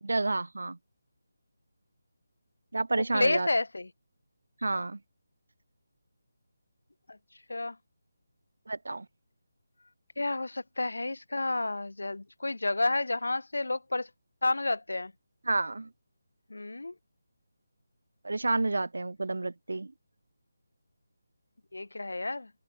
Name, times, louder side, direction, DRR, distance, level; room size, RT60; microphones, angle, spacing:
voice 1, 0.0-0.8 2.7-3.5 4.6-5.0 8.7-9.1 15.4-15.9 18.2-19.9, right 2 dB, 80° right, 1.4 m, -30 dB
voice 2, 3.0-3.9 7.5-7.8 10.2-14.1 14.4-15.1 16.5-16.9 21.7-22.5, left 2 dB, 85° left, 0.9 m, -30 dB
figure-of-eight pair, 165°, 0 cm